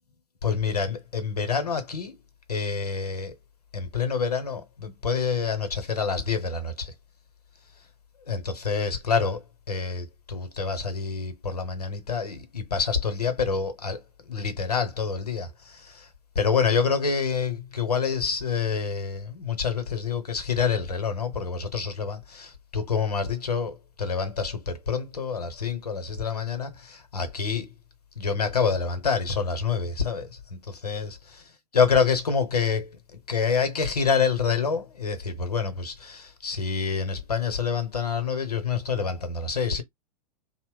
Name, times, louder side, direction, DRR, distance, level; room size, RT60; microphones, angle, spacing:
voice 1, 0.4-2.2 2.5-3.3 3.7-6.9 8.3-16.1 16.3-27.7 28.2-31.4 31.7-32.9 33.3-39.8, left 5 dB, 80° left, 0.9 m, -27 dB
2.8 x 2.1 x 3.1 m
figure-of-eight pair, 105°, 20 cm